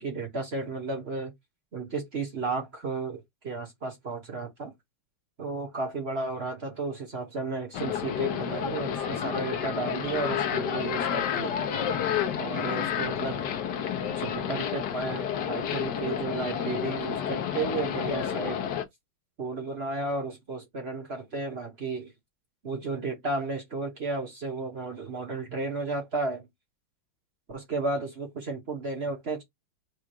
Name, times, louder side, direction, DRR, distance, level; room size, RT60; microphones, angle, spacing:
voice 1, 0.0-1.3 1.7-4.7 5.4-11.5 12.4-13.4 14.1-18.6 19.4-22.1 22.6-26.5 27.5-29.4, right 3 dB, 40° right, 1.1 m, -33 dB
sound 1, 7.7-18.8, left 8 dB, 60° left, 1.3 m, -30 dB
4.8 x 2.4 x 4.6 m
omnidirectional pair, 2.3 m